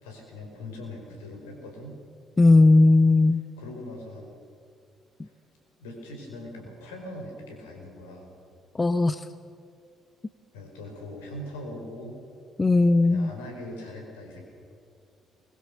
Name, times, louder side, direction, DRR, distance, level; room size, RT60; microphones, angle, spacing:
voice 1, 0.0-2.0 3.6-4.3 5.2-5.3 5.8-8.3 10.5-12.2 13.0-14.4, left 1 dB, 80° left, 1 dB, 5.0 m, -41 dB
voice 2, 2.4-3.4 8.8-9.2 12.6-13.3, left 2 dB, 25° left, 13 dB, 0.8 m, -17 dB
23.5 x 21.5 x 6.9 m, 2.4 s
figure-of-eight pair, 45°, 0 cm